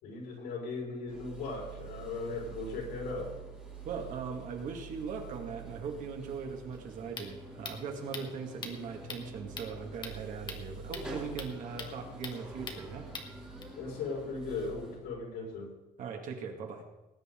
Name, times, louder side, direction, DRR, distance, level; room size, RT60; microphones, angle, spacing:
voice 1, 0.0-3.4 13.7-15.7, left 3 dB, 85° left, -1 dB, 5.1 m, -38 dB
sound 1, 1.1-15.0, right 4 dB, 5° right, 3.3 m, -47 dB
voice 2, 3.9-13.1 16.0-16.8, right 5 dB, 50° right, 3 dB, 2.4 m, -40 dB
sound 2, 6.7-13.6, left 4 dB, 30° left, 1.6 m, -45 dB
19.5 x 9.9 x 3.9 m, 1.1 s
cardioid pair, 170°, 17 cm